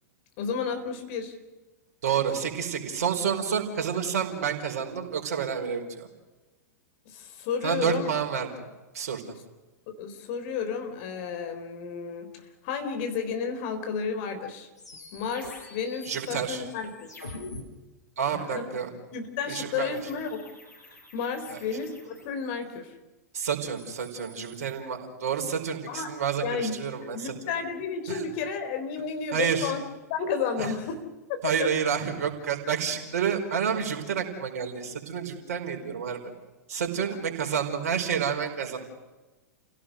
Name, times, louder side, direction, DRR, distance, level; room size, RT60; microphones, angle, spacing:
voice 1, 0.4-1.4 7.0-8.1 9.9-12.3 12.6-14.7 15.1-17.1 18.3-18.7 19.1-20.4 21.1-22.9 25.9-26.1 26.4-26.7 27.0-29.8 30.1-31.0 31.3-31.7 37.1-37.2, left 6 dB, 45° left, 6 dB, 4.2 m, -32 dB
voice 2, 2.0-6.1 7.6-8.5 8.9-9.2 16.1-16.6 18.2-18.9 19.5-20.0 21.5-21.6 23.3-27.3 28.1-28.2 29.3-29.7 30.6-30.7 31.4-36.2 36.7-38.8, right 7 dB, 60° right, 3 dB, 4.7 m, -29 dB
sound 1, 14.8-17.6 19.9-22.7 23.5-24.8, left 2 dB, 80° left, 6.8 m, -46 dB
29.5 x 17.0 x 6.6 m, 1.2 s
figure-of-eight pair, 100°, 9 cm